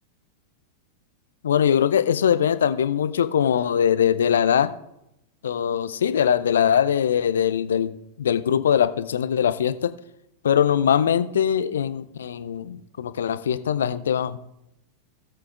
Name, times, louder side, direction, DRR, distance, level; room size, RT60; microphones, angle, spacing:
voice 1, 1.4-4.7 5.4-7.9 8.2-9.9 10.4-14.4, left 8 dB, 65° left, 14 dB, 0.4 m, -21 dB
17.5 x 7.7 x 2.4 m, 0.86 s
figure-of-eight pair, 90°, 0 cm